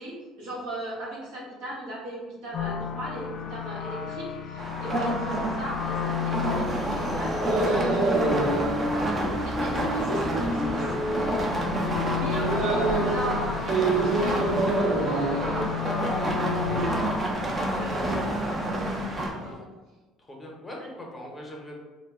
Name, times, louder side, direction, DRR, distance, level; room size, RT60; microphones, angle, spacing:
voice 1, 0.0-11.4 12.1-16.8 17.2-18.9 19.4-19.7 20.8-20.9, right 1 dB, 90° right, -4 dB, 0.8 m, -37 dB
sound 1, 2.5-17.3, left 5 dB, 60° left, 0.3 m, -32 dB
sound 2, 4.6-19.3, right 1 dB, 30° right, 0.4 m, -29 dB
sound 3, 7.4-19.5, right 3 dB, 60° right, 0.8 m, -30 dB
voice 2, 20.3-21.7, left 1 dB, 20° left, -1 dB, 0.6 m, -42 dB
2.0 x 2.0 x 3.4 m, 1.2 s
supercardioid pair, 95°, 0 cm